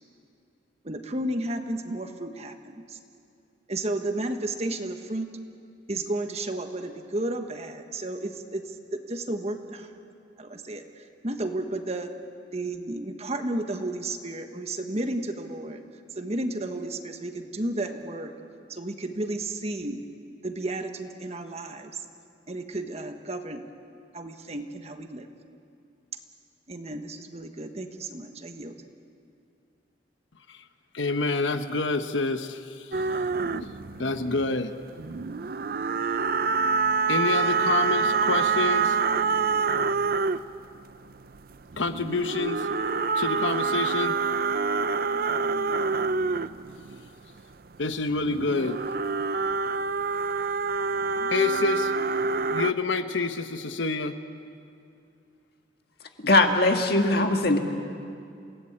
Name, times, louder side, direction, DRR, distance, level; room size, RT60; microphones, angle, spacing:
voice 1, 0.8-3.0 3.7-5.3 5.9-9.9 10.4-12.1 12.5-15.8 16.1-18.3 18.7-20.0 20.4-22.0 22.5-23.6 24.1-25.3 26.7-28.7, right 1 dB, 35° right, 6 dB, 1.4 m, -32 dB
voice 2, 30.9-32.6 33.4-33.7 34.0-34.8 37.1-38.9 41.8-42.7 43.2-44.2 47.8-48.8 51.3-51.9 52.2-54.2, left 3 dB, 80° left, 9 dB, 1.1 m, -27 dB
sound 1, 32.9-34.7 35.0-40.6 41.4-47.1 48.1-52.7, right 4 dB, 50° right, 0.5 m, -26 dB
voice 3, 56.2-57.6, left 2 dB, 55° left, 4 dB, 1.9 m, -20 dB
28.5 x 18.0 x 8.7 m, 2.5 s
head